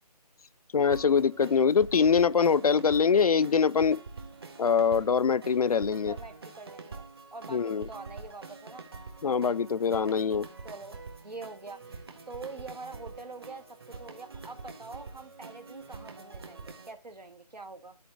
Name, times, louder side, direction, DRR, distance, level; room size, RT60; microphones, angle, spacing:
voice 1, 0.7-4.0 4.6-6.2 7.5-7.9 9.2-10.5, left 6 dB, 65° left, 0.5 m, -24 dB
sound 1, 0.9-16.9, right 4 dB, 35° right, 1.5 m, -46 dB
voice 2, 6.1-7.1 7.3-8.8 9.2-9.7 10.6-18.0, right 3 dB, 90° right, 1.5 m, -45 dB
13.0 x 4.6 x 3.5 m
figure-of-eight pair, 170°, 21 cm